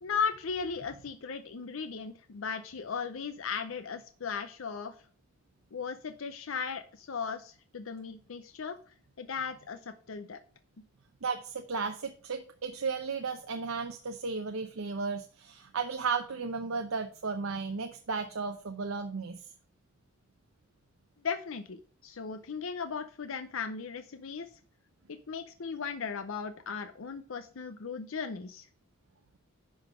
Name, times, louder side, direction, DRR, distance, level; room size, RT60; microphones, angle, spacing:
voice 1, 0.0-4.9 5.7-8.8 9.2-10.4 21.2-24.5 25.1-28.7, left 6 dB, 70° left, 9 dB, 0.6 m, -37 dB
voice 2, 11.2-19.5, right 4 dB, 75° right, 6 dB, 0.7 m, -34 dB
10.5 x 4.0 x 4.9 m, 0.43 s
head